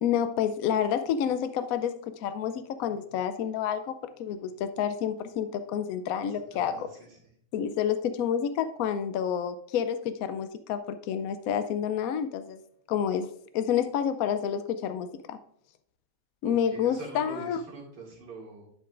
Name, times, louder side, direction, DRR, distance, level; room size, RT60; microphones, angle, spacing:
voice 1, 0.0-6.9 7.5-12.6 12.9-13.3 13.5-15.4 16.4-17.6, left 8 dB, 70° left, 10 dB, 0.9 m, -29 dB
voice 2, 6.2-7.2 16.4-18.7, right 3 dB, 90° right, -2 dB, 2.8 m, -44 dB
10.5 x 6.8 x 2.4 m, 0.67 s
omnidirectional pair, 1.8 m